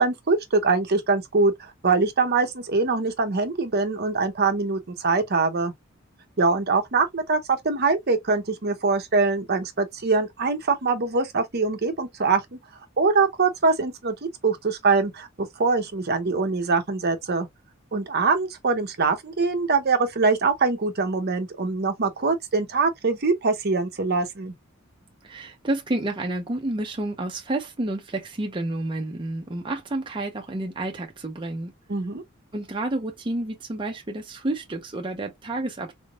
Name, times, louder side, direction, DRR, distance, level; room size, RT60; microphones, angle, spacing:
voice 1, 0.0-5.7 6.4-12.4 13.0-14.1 14.4-17.5 17.9-24.5 31.9-32.2, right 4 dB, 50° right, 0.8 m, -23 dB
voice 2, 25.2-31.7 32.5-35.9, right 2 dB, 25° right, 0.6 m, -30 dB
3.8 x 3.5 x 2.3 m
head